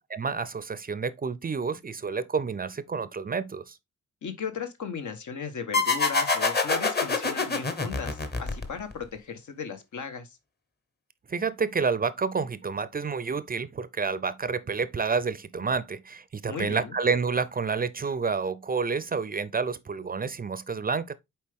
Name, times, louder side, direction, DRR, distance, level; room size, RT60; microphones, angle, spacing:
voice 1, 0.1-3.8 11.3-21.1, right 5 dB, 30° right, 0.5 m, -29 dB
voice 2, 4.2-10.4 16.5-16.9, left 6 dB, 75° left, 1.4 m, -36 dB
sound 1, 5.7-9.0, left 4 dB, 35° left, 1.2 m, -26 dB
7.3 x 4.5 x 3.6 m
wide cardioid pair, 135°, 30 cm